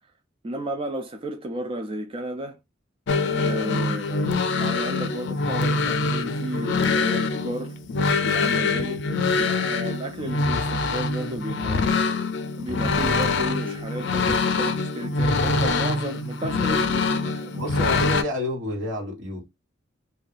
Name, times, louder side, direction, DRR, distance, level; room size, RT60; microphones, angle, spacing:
voice 1, 0.4-2.6 3.2-7.8 8.2-9.0 9.3-11.9 12.6-17.7, right 1 dB, 30° right, 0.4 m, -33 dB
sound 1, 3.1-18.2, left 3 dB, 65° left, 0.5 m, -24 dB
voice 2, 17.6-19.5, left 1 dB, 70° right, 1.5 m, -29 dB
2.6 x 2.3 x 3.9 m
head